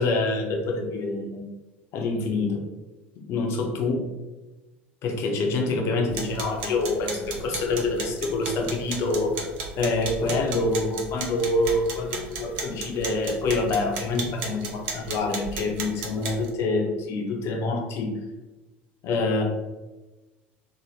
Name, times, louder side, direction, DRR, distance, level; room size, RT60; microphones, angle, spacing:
voice 1, 0.0-1.4 1.9-2.6 3.2-4.1 5.0-9.5 9.8-18.2 19.0-19.4, left 3 dB, 45° left, 3 dB, 0.5 m, -26 dB
sound 1, 6.1-16.5, right 4 dB, 60° right, 0.5 m, -35 dB
2.7 x 2.1 x 3.1 m, 1.1 s
figure-of-eight pair, 65°, 6 cm